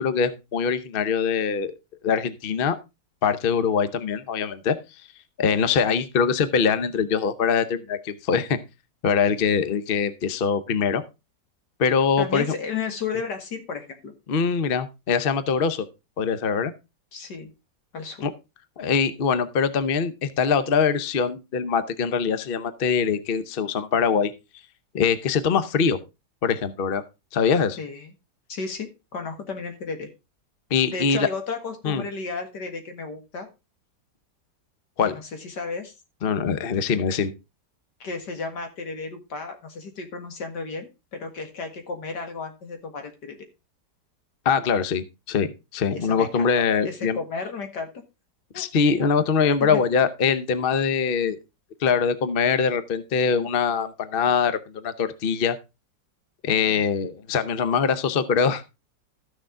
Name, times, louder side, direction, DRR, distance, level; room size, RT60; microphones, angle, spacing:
voice 1, 0.0-1.7 2.0-2.8 3.2-4.8 5.4-8.6 9.0-11.0 11.8-12.5 14.3-15.9 16.2-16.7 18.2-18.3 18.8-24.3 24.9-26.0 26.4-27.0 27.3-27.8 30.7-31.3 31.8-32.0 35.0-35.1 36.2-37.3 44.4-45.5 45.7-47.2 48.5-51.4 51.8-55.6 56.4-58.6, left 6 dB, 45° left, 12 dB, 0.7 m, -23 dB
voice 2, 12.2-14.1 17.1-17.5 17.9-18.3 27.8-28.1 28.5-30.1 30.9-33.5 35.1-35.9 38.0-43.4 45.9-48.0 48.5-48.7 49.0-49.1 49.6-49.8 56.7-56.9, left 4 dB, 75° left, 5 dB, 2.4 m, -33 dB
13.5 x 6.6 x 3.7 m, 0.26 s
omnidirectional pair, 1.9 m